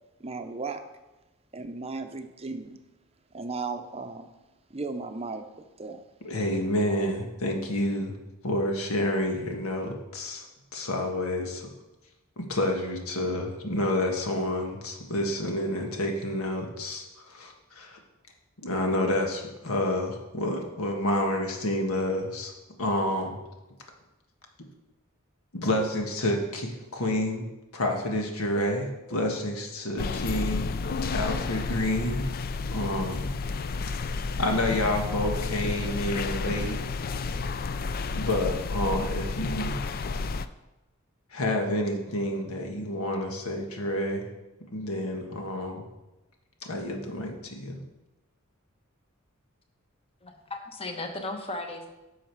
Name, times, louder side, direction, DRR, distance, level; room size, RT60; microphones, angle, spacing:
voice 1, 0.2-0.8 1.5-2.8 3.3-4.3 4.7-6.0, right 3 dB, 30° right, 7 dB, 0.6 m, -36 dB
voice 2, 6.2-8.2 8.4-10.4 10.7-11.7 12.4-18.0 18.6-22.5 22.8-23.4 25.5-27.5 27.7-30.7 31.1-32.2 32.7-33.3 34.4-36.8 38.1-40.0 41.3-44.3 44.7-45.8 46.6-47.8, left 1 dB, 85° left, 3 dB, 1.6 m, -29 dB
sound 1, 30.0-40.5, left 4 dB, 45° left, 0.4 m, -31 dB
voice 3, 50.2-51.9, left 2 dB, 25° left, 4 dB, 1.1 m, -36 dB
10.5 x 6.4 x 4.7 m, 1.0 s
head